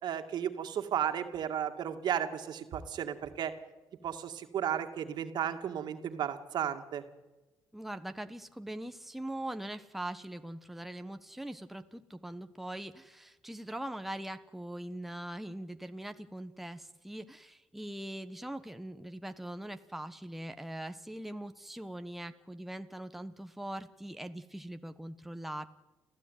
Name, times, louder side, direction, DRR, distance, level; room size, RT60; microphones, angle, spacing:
voice 1, 0.0-3.5 4.0-7.0, right 9 dB, 65° right, 7 dB, 2.2 m, -34 dB
voice 2, 7.7-25.7, right 1 dB, ahead, 8 dB, 1.2 m, -42 dB
29.0 x 14.5 x 9.4 m, 1.1 s
supercardioid pair, 65°, 8 cm